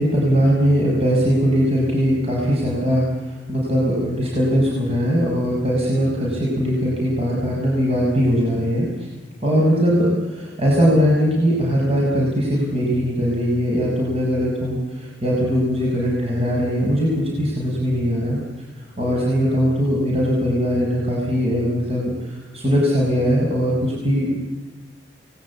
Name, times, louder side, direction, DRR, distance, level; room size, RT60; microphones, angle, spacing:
voice 1, 0.0-3.1 3.5-8.9 9.4-18.4 19.0-22.1 22.5-24.4, equal, 35° right, -4 dB, 6.1 m, -20 dB
29.5 x 19.5 x 8.5 m, 1.3 s
head